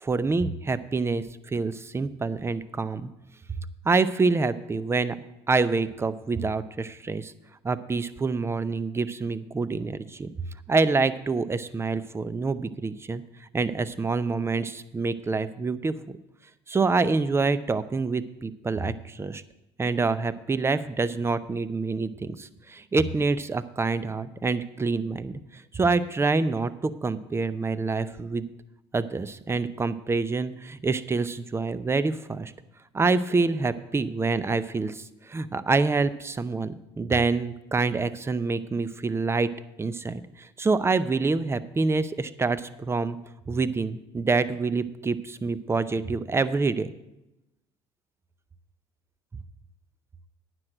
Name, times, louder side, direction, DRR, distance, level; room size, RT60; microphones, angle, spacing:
voice 1, 0.0-3.1 3.8-5.2 5.5-7.3 7.6-10.3 10.7-13.2 13.5-16.0 16.7-19.4 19.8-25.4 25.7-28.5 28.9-32.5 32.9-35.0 35.3-39.5 39.8-40.2 40.6-43.2 43.5-46.9, right 4 dB, 20° right, 14 dB, 0.6 m, -26 dB
9.7 x 6.1 x 7.7 m, 0.93 s
hypercardioid pair, 70°, 13 cm